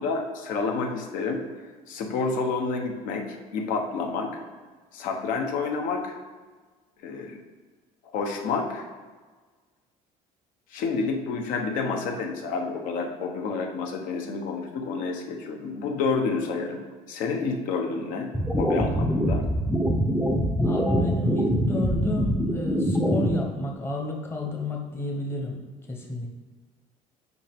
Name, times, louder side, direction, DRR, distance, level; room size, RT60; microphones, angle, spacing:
voice 1, 0.0-1.4 1.9-3.3 3.5-4.3 4.9-6.1 7.0-7.4 8.1-8.9 10.7-16.8 17.1-18.3 18.6-19.5, left 4 dB, 65° left, 3 dB, 1.1 m, -29 dB
sound 1, 18.3-23.3, equal, ahead, 0.6 m, -24 dB
voice 2, 20.6-25.6 25.9-26.3, left 1 dB, 15° left, 0 dB, 1.0 m, -31 dB
8.3 x 5.3 x 3.6 m, 1.4 s
cardioid pair, 170°, 15 cm